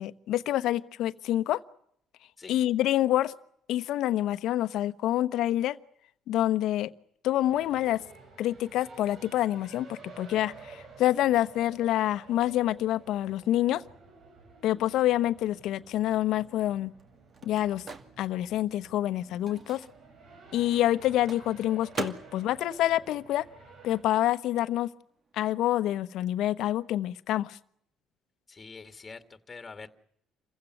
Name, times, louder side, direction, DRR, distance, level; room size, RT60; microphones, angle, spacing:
voice 1, 0.0-1.6 2.5-3.3 3.7-5.8 6.3-6.9 7.2-8.0 8.4-13.8 14.6-16.9 17.4-17.8 18.2-19.8 20.5-23.5 23.8-24.9 25.3-27.6, left 13 dB, 70° left, 13 dB, 1.1 m, -27 dB
sound 1, 7.4-24.0, right 4 dB, 60° right, 5.7 m, -52 dB
Microwave oven, 16.6-24.1 24.4-26.3, right 4 dB, 40° right, 2.3 m, -44 dB
voice 2, 28.5-29.9, left 4 dB, 20° left, 9 dB, 2.3 m, -45 dB
28.0 x 16.0 x 9.3 m, 0.71 s
cardioid pair, 105°, 0 cm